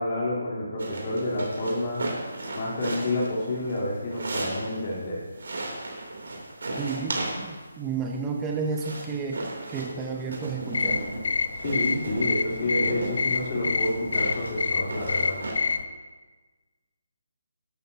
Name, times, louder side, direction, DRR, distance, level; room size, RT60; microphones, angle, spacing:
voice 1, 0.0-2.0 2.5-5.2 11.6-15.4, left 1 dB, 35° left, -6 dB, 3.6 m, -29 dB
sound 1, 0.8-5.0 5.3-7.7 8.4-15.5, right 2 dB, 75° right, 3.2 m, -35 dB
voice 2, 6.8-9.4 9.7-11.0, right 4 dB, 10° right, 1 dB, 0.7 m, -31 dB
sound 2, 10.7-15.8, left 4 dB, 65° left, 0.6 m, -28 dB
14.0 x 12.0 x 2.9 m, 1.3 s
hypercardioid pair, 165°, 0 cm